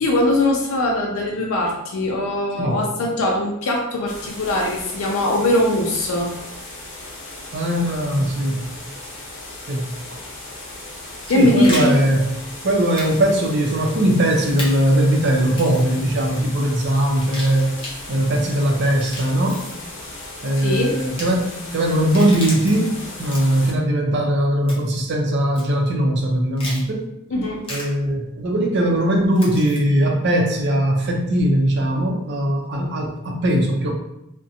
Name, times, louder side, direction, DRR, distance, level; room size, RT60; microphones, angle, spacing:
voice 1, 0.0-6.4 11.3-12.0 20.6-21.0 27.3-27.6, left 1 dB, 80° left, -1 dB, 0.4 m, -20 dB
sound 1, 4.1-23.7, left 2 dB, 65° left, 0.8 m, -37 dB
voice 2, 7.5-8.7 9.7-10.2 11.3-12.3 12.6-19.6 20.4-27.0 27.7-33.9, right 1 dB, 55° right, 1 dB, 0.5 m, -20 dB
sound 2, 11.2-11.9 13.0-13.1 13.4-13.5 14.6-14.7 15.5-15.9 17.1-17.9 18.8-19.8 21.0-21.2 21.9-22.8 23.2-23.7 24.7-25.0 25.5-25.6 26.6-26.8 27.6-27.8 29.3-29.8, left 1 dB, 25° left, 0.7 m, -33 dB
2.5 x 2.1 x 2.7 m, 0.85 s
head